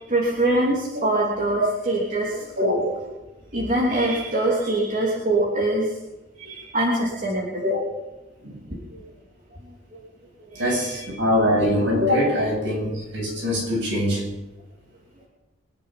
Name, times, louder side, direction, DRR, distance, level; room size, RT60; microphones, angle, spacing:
voice 1, 0.0-2.8 3.5-5.9 6.4-7.7 8.7-9.0 10.5-11.0, right 1 dB, 40° right, -5 dB, 3.1 m, -24 dB
voice 2, 2.6-2.9 7.6-7.8 8.4-8.6 10.5-14.3, left 1 dB, 65° right, -1 dB, 7.3 m, -23 dB
23.5 x 10.5 x 5.9 m, 1.1 s
head